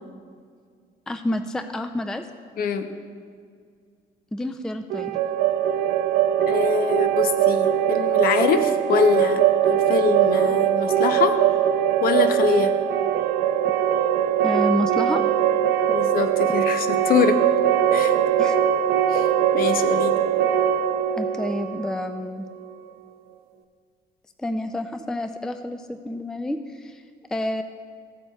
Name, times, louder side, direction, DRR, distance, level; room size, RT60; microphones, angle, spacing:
voice 1, 1.1-2.3 4.3-5.1 14.4-15.2 18.4-18.6 21.1-22.5 24.4-27.0 27.3-27.6, left 1 dB, 5° left, 8 dB, 0.3 m, -28 dB
voice 2, 2.6-2.9 6.5-11.4 12.0-12.7 15.9-17.4 17.9-18.2 19.1-19.3 19.5-20.1, left 6 dB, 60° left, 9 dB, 0.7 m, -24 dB
sound 1, 4.9-22.7, right 10 dB, 70° right, 0.5 m, -21 dB
15.5 x 8.3 x 2.3 m, 2.1 s
cardioid pair, 110°, 17 cm